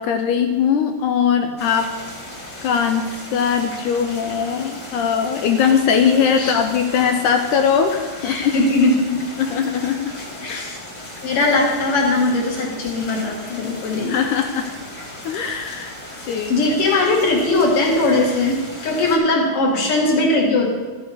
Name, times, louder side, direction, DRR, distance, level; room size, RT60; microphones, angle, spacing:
voice 1, 0.0-1.9 2.6-3.1 3.3-8.5 9.4-10.1 10.5-10.6 14.1-14.7 15.3-16.0 16.3-16.6, left 7 dB, 80° left, 6 dB, 1.9 m, -20 dB
sound 1, 1.6-19.2, left 1 dB, 30° left, 1.6 m, -36 dB
voice 2, 8.2-9.2 10.4-10.8 11.2-14.2 16.5-18.6 18.8-20.7, left 2 dB, 50° left, -1 dB, 2.2 m, -19 dB
13.5 x 7.0 x 5.0 m, 1.4 s
omnidirectional pair, 4.0 m